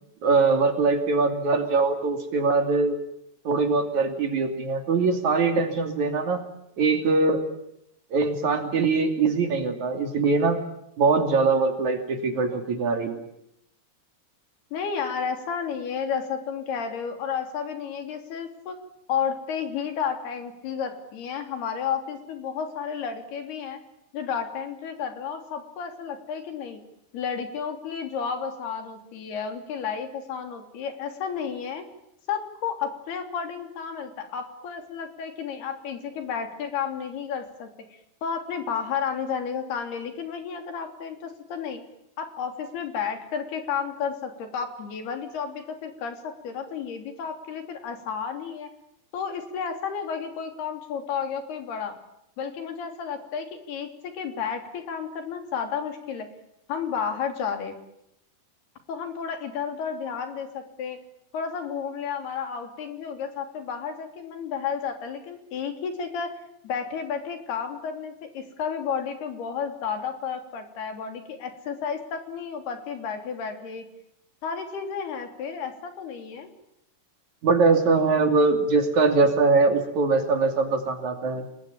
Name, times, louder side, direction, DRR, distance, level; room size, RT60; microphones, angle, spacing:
voice 1, 0.2-3.0 3.5-6.4 6.8-7.4 8.1-10.6 11.0-13.2 77.4-81.4, right 4 dB, 55° right, 6 dB, 3.8 m, -22 dB
voice 2, 14.7-18.8 19.1-23.8 24.1-26.8 27.1-31.8 32.3-37.7 38.2-41.8 42.2-46.2 46.4-48.7 49.1-51.9 52.4-56.3 56.7-57.7 58.9-61.0 61.3-66.4 66.6-73.8 74.4-76.5, left 7 dB, 90° left, 6 dB, 5.2 m, -32 dB
29.0 x 21.0 x 8.9 m, 0.80 s
omnidirectional pair, 4.4 m